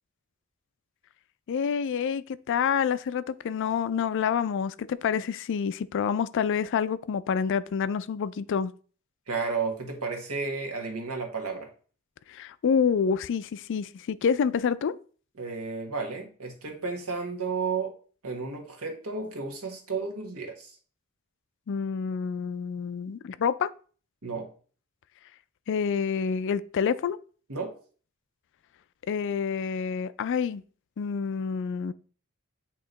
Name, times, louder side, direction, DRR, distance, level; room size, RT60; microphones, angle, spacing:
voice 1, 1.5-8.7 12.3-15.0 21.7-23.7 25.7-27.2 29.1-30.6 31.0-31.9, left 6 dB, 55° left, 0.3 m, -27 dB
voice 2, 9.3-11.7 15.4-17.9 18.2-20.7 24.2-24.5 27.5-27.7, right 4 dB, 75° right, 1.4 m, -32 dB
8.6 x 3.0 x 3.9 m
head